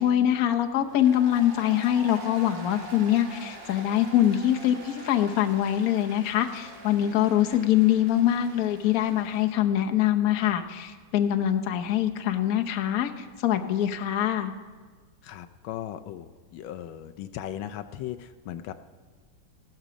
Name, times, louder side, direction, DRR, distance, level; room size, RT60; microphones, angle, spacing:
voice 1, 0.0-14.5, left 11 dB, 55° left, 5 dB, 1.1 m, -24 dB
Applause, 0.8-9.6, right 3 dB, 65° right, 3.0 m, -45 dB
voice 2, 15.2-18.7, left 11 dB, 80° left, 9 dB, 1.3 m, -37 dB
16.0 x 12.5 x 5.0 m, 1.5 s
omnidirectional pair, 2.2 m